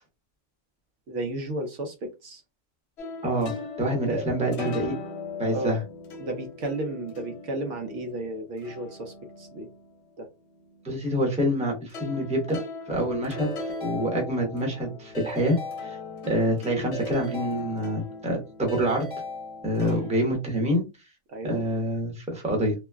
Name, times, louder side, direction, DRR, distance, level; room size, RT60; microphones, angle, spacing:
voice 1, 1.1-2.4 4.1-4.2 5.5-5.7 6.2-9.7 10.2-10.3 14.0-14.2 19.8-20.0 21.3-21.6, right 2 dB, 70° right, 0.9 m, -33 dB
sound 1, 3.0-11.6 11.9-20.3, left 3 dB, 60° left, 0.8 m, -40 dB
voice 2, 3.8-4.9 5.4-5.8 10.8-12.6 12.9-13.5 13.8-16.0 16.3-19.1 19.6-20.8 21.4-22.7, equal, 5° right, 0.8 m, -26 dB
Keyboard (musical) / Ringtone, 13.4-14.7 15.1-16.5 16.9-18.3 18.7-20.0, left 1 dB, 35° left, 1.0 m, -38 dB
3.0 x 2.1 x 2.2 m
omnidirectional pair, 1.4 m